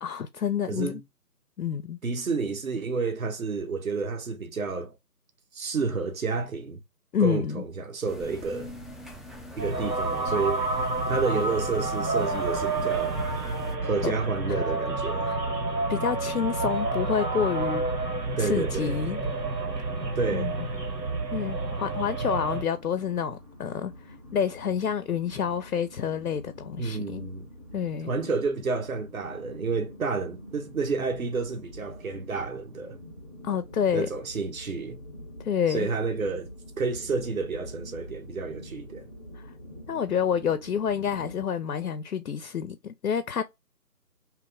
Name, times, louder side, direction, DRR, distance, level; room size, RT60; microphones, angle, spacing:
voice 1, 0.0-1.0 1.6-2.0 7.1-7.6 13.8-14.1 15.3-15.4 15.9-17.8 18.4-19.2 19.8-19.9 20.3-20.5 21.3-23.9 24.3-27.3 27.7-28.1 33.4-34.1 35.4-35.9 39.3-39.4 39.9-43.4, left 8 dB, 70° left, 0.5 m, -28 dB
voice 2, 0.7-1.0 2.0-4.9 5.5-6.8 7.2-8.7 9.6-10.6 11.1-13.2 13.8-15.3 18.4-19.0 20.2-20.5 26.8-27.5 28.1-33.0 33.9-35.0 35.7-36.5 36.8-39.1, right 4 dB, 55° right, 0.8 m, -30 dB
sound 1, 8.1-13.7, left 1 dB, ahead, 0.4 m, -44 dB
sound 2, 9.6-22.6, right 3 dB, 80° right, 1.1 m, -29 dB
sound 3, 22.7-41.4, equal, 20° right, 0.9 m, -46 dB
2.9 x 2.4 x 3.4 m
figure-of-eight pair, 160°, 49 cm